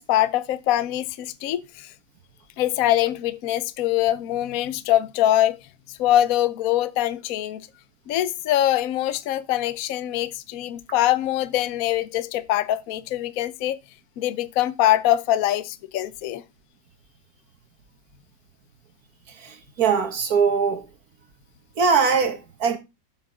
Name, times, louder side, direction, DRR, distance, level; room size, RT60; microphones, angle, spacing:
voice 1, 0.0-1.9 2.6-5.6 5.9-7.7 8.1-13.8 14.2-16.4, left 13 dB, 60° left, 1.0 m, -23 dB
voice 2, 19.8-20.8 21.8-22.8, right 5 dB, 55° right, 2.1 m, -21 dB
8.1 x 6.1 x 5.8 m
omnidirectional pair, 1.9 m